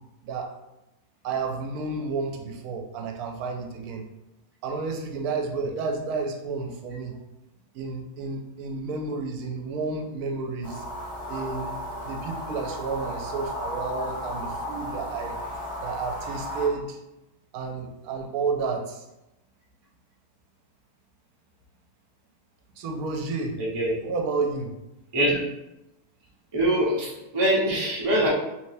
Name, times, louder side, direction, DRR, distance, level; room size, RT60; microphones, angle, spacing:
voice 1, 0.2-0.6 1.2-4.1 4.6-7.2 7.7-10.8 11.3-11.8 12.0-15.4 15.8-17.0 17.5-19.0 22.8-23.6 24.0-24.7, right 4 dB, 75° right, 2 dB, 1.1 m, -31 dB
sound 1, 10.6-16.7, equal, 30° left, 1.1 m, -34 dB
voice 2, 23.6-24.0 25.1-25.4 26.5-28.3, right 1 dB, 25° right, -6 dB, 0.6 m, -23 dB
3.3 x 3.2 x 2.6 m, 0.94 s
omnidirectional pair, 1.6 m